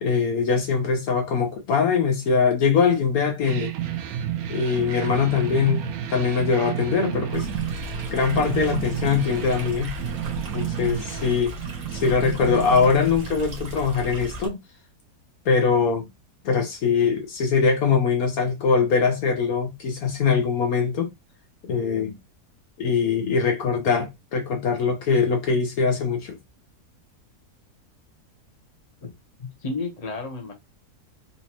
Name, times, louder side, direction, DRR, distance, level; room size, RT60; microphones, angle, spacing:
voice 1, 0.0-3.7 4.5-5.8 6.1-7.5 8.1-9.9 10.5-11.5 11.9-14.6 15.4-16.1 16.4-21.1 21.7-22.2 22.8-26.4, left 5 dB, 70° left, 1.2 m, -22 dB
sound 1, 3.4-14.0, right 10 dB, 70° right, 1.0 m, -31 dB
Stream, 7.3-14.5, right 1 dB, 55° right, 1.4 m, -36 dB
voice 2, 29.4-30.5, left 3 dB, 30° left, 1.0 m, -32 dB
4.1 x 2.5 x 2.9 m
omnidirectional pair, 1.7 m